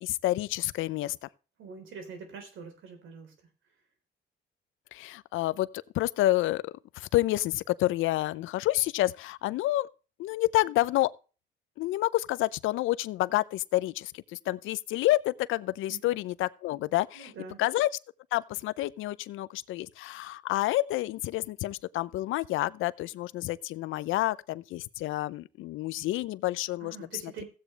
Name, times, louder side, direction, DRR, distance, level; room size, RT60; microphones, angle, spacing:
voice 1, 0.0-1.2 4.9-5.7 5.9-6.6 7.0-9.9 10.2-11.1 11.8-17.3 17.6-17.9 18.3-27.0, left 16 dB, 90° left, 0.6 m, -29 dB
voice 2, 1.6-3.3 15.9-16.2 17.1-17.6 26.8-27.4, right 5 dB, 80° right, 3.9 m, -44 dB
15.5 x 8.4 x 3.3 m
cardioid pair, 90°, 20 cm